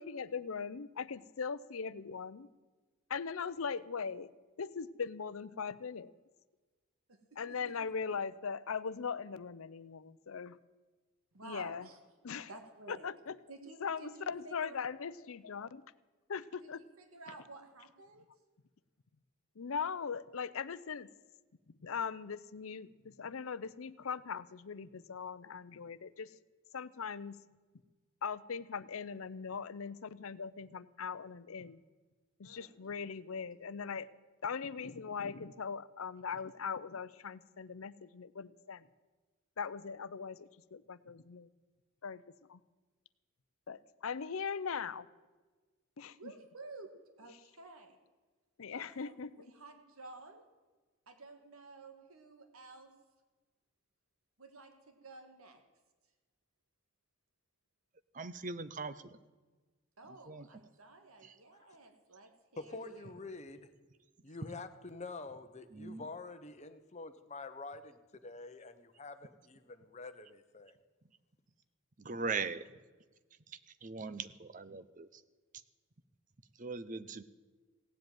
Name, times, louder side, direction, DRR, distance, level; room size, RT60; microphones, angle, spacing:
voice 1, 0.0-2.5 3.1-4.3 4.6-6.1 7.4-10.6 11.4-11.9 12.2-12.5 12.9-13.4 13.8-15.8 16.3-16.8 19.6-21.1 21.8-26.3 26.7-27.4 28.2-31.8 32.4-34.1 34.4-38.9 39.6-41.5 42.0-42.2 42.5-42.6 43.7-45.1 46.0-46.3 48.6-49.3, left 6 dB, 75° left, 0.6 m, -40 dB
voice 2, 7.1-7.7 11.3-12.0 12.5-13.1 13.5-14.8 16.6-18.3 32.4-32.8 46.1-48.0 48.7-50.5 51.1-52.9 54.4-55.6 60.0-63.1, right 3 dB, 80° right, 1.8 m, -53 dB
voice 3, 58.1-59.2 60.1-60.5 61.2-61.4 65.7-66.1 72.0-72.6 73.5-75.2 76.5-77.2, right 4 dB, 35° right, 0.7 m, -40 dB
voice 4, 62.6-63.7 64.2-70.8, left 3 dB, 30° left, 1.0 m, -47 dB
17.0 x 7.9 x 9.1 m
head